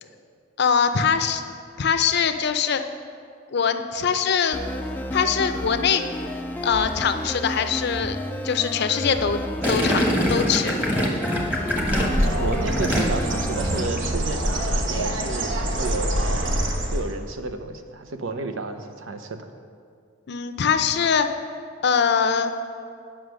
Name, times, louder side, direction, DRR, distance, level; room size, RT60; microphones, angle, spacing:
voice 1, 0.6-1.4 1.8-2.8 3.5-4.6 5.1-6.0 6.6-8.2 8.4-9.4 9.7-10.7 20.3-21.3 21.8-22.5, left 6 dB, 60° left, 8 dB, 0.5 m, -22 dB
sound 1, 4.5-13.8, left 1 dB, 10° left, 0.4 m, -31 dB
Gurgling, 9.6-13.4 13.7-14.1, equal, 10° right, 1.1 m, -24 dB
Bird, 11.7-17.3, right 1 dB, 65° right, 1.0 m, -25 dB
voice 2, 12.2-19.5, right 3 dB, 85° right, 7 dB, 0.7 m, -32 dB
9.7 x 5.7 x 6.3 m, 2.2 s
head